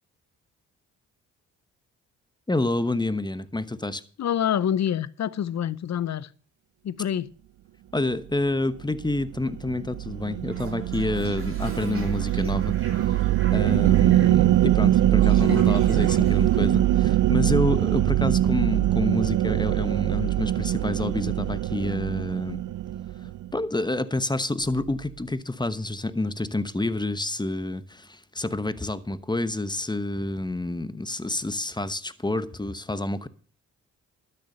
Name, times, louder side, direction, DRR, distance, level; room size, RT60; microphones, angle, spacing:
voice 1, 2.5-4.0 7.9-12.8 13.0-13.1 13.5-22.6 23.5-33.3, left 2 dB, 15° left, 1.1 m, -28 dB
voice 2, 4.2-6.3 6.8-7.3, left 9 dB, 55° left, 0.8 m, -26 dB
sound 1, 9.0-23.5, right 13 dB, 65° right, 0.6 m, -22 dB
Toilet flush, 10.4-17.4, right 3 dB, 40° right, 4.5 m, -43 dB
12.5 x 6.8 x 6.7 m
supercardioid pair, 55°, 34 cm